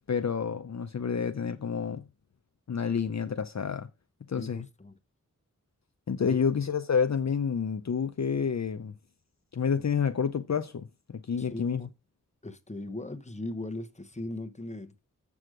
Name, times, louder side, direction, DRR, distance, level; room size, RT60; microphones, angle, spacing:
voice 1, 0.1-2.1 2.7-3.9 4.3-4.7 6.1-8.9 9.5-11.9, left 6 dB, 55° left, 0.6 m, -29 dB
voice 2, 4.3-5.0 6.3-6.4 11.4-11.9 12.4-15.1, left 2 dB, 20° left, 1.1 m, -39 dB
7.7 x 6.3 x 4.9 m
wide cardioid pair, 50°, 32 cm